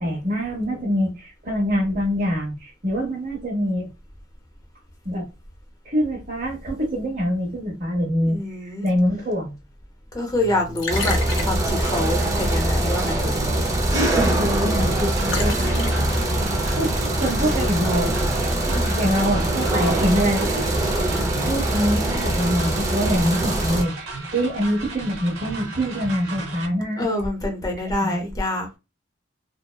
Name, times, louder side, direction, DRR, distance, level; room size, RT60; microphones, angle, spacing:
voice 1, 0.0-3.9 5.0-5.3 5.8-9.6 13.1-13.7 14.1-15.7 16.8-18.2 19.0-20.6 21.4-27.1 28.0-28.2, equal, 45° right, 1.2 m, -25 dB
voice 2, 8.2-8.9 10.1-11.2 11.4-13.3 18.6-19.1 27.0-28.7, left 1 dB, 20° left, 0.7 m, -26 dB
Liquid, 10.3-18.4, left 2 dB, 75° left, 0.6 m, -35 dB
sound 1, 10.9-23.8, right 1 dB, 15° right, 0.4 m, -23 dB
sound 2, 14.8-26.7, right 3 dB, 90° right, 0.7 m, -34 dB
2.7 x 2.1 x 2.2 m
head